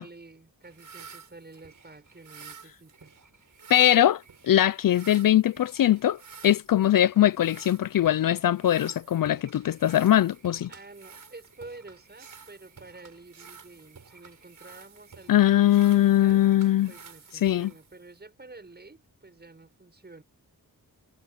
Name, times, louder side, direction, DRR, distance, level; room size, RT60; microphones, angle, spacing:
voice 1, 0.0-3.1 10.7-16.5 16.9-20.2, right 3 dB, 25° right, 6.9 m, -49 dB
sound 1, 0.6-18.2, right 5 dB, 55° right, 6.6 m, -51 dB
voice 2, 3.7-10.7 15.3-16.9 17.4-17.7, left 12 dB, 65° left, 0.5 m, -21 dB
wide cardioid pair, 115°, 37 cm